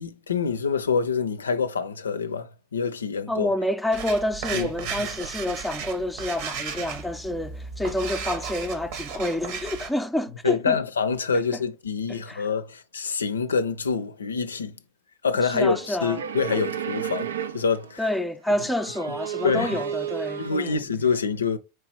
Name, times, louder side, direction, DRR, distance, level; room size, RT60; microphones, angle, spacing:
voice 1, 0.0-3.5 4.5-4.7 5.0-5.1 10.4-14.8 15.2-18.1 19.4-19.8 20.4-21.6, left 5 dB, 80° left, 0.4 m, -26 dB
voice 2, 3.3-10.8 11.5-11.6 12.1-12.5 15.4-16.2 18.0-20.9, left 1 dB, 5° left, 0.5 m, -28 dB
sound 1, 3.9-9.9, right 6 dB, 55° right, 0.9 m, -35 dB
sound 2, 15.5-18.0 18.5-20.7, right 9 dB, 75° right, 0.4 m, -33 dB
4.5 x 3.0 x 3.0 m
figure-of-eight pair, 90°, 0 cm